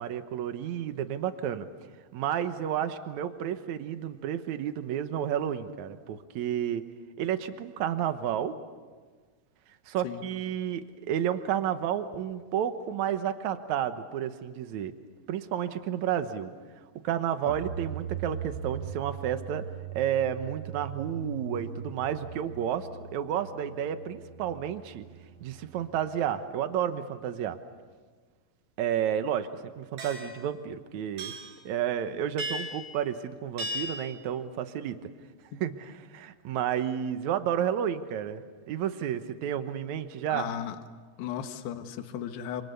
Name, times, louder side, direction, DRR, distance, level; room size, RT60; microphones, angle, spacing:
voice 1, 0.0-1.7 2.1-6.8 7.2-8.5 9.9-14.9 15.3-16.5 17.0-19.6 19.9-25.1 25.4-27.6 28.8-29.5 29.8-31.3 31.6-35.0 35.6-40.5, right 9 dB, 80° right, 9 dB, 1.7 m, -31 dB
sound 1, 17.5-26.3, right 7 dB, 35° right, 2.9 m, -40 dB
sound 2, 30.0-30.4 31.2-31.6 32.4-32.9 33.6-34.1, equal, 60° right, 7.0 m, -35 dB
voice 2, 40.3-40.8 41.2-42.6, left 10 dB, 75° left, 7 dB, 3.4 m, -35 dB
28.0 x 28.0 x 6.9 m, 1.5 s
omnidirectional pair, 4.9 m